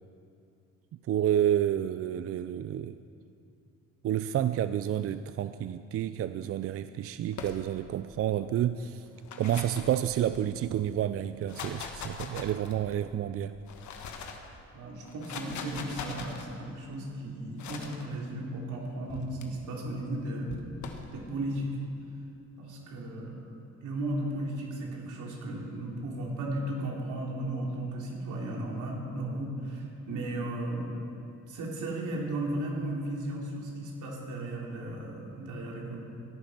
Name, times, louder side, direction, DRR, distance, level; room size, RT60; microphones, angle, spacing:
voice 1, 1.1-3.0 4.0-9.1 9.4-13.5, right 11 dB, 50° right, 11 dB, 0.4 m, -29 dB
sound 1, 7.3-8.0 9.0-10.6 11.3-12.9 13.5-14.5 15.1-16.5 17.6-18.0 19.1-19.5 20.5-21.1, left 6 dB, 70° left, 1.4 m, -42 dB
voice 2, 14.7-21.7 22.6-23.3 23.8-30.9 31.5-36.0, right 1 dB, 80° right, -2 dB, 3.0 m, -35 dB
15.5 x 9.1 x 6.0 m, 2.6 s
cardioid pair, 90°, 30 cm